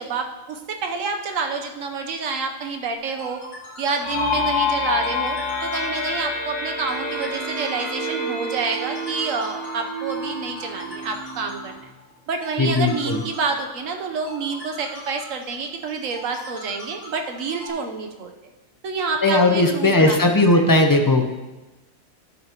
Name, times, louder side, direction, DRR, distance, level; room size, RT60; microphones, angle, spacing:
voice 1, 0.0-3.4 3.8-11.9 12.3-18.3 18.8-20.3 20.5-20.6, right 4 dB, 70° right, 4 dB, 1.3 m, -28 dB
sound 1, 2.9-17.7, left 1 dB, 55° left, 2.7 m, -41 dB
sound 2, 4.0-11.6, left 2 dB, 70° left, 1.7 m, -28 dB
voice 2, 12.6-13.2 19.2-21.3, left 2 dB, 30° left, 3 dB, 0.3 m, -17 dB
11.5 x 6.7 x 2.9 m, 1.1 s
omnidirectional pair, 1.5 m